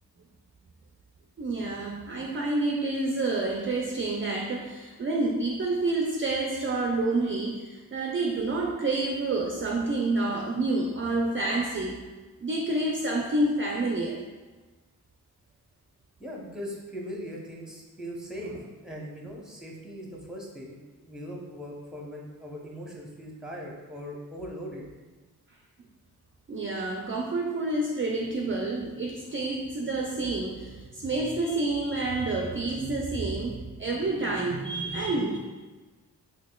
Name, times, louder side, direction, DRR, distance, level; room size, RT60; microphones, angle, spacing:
voice 1, 1.4-12.1 12.4-14.2 26.5-35.4, right 2 dB, 35° right, 0 dB, 0.4 m, -28 dB
voice 2, 16.2-18.5 18.8-24.9, equal, ahead, -2 dB, 0.8 m, -40 dB
4.1 x 2.8 x 2.3 m, 1.3 s
cardioid pair, 40°, 39 cm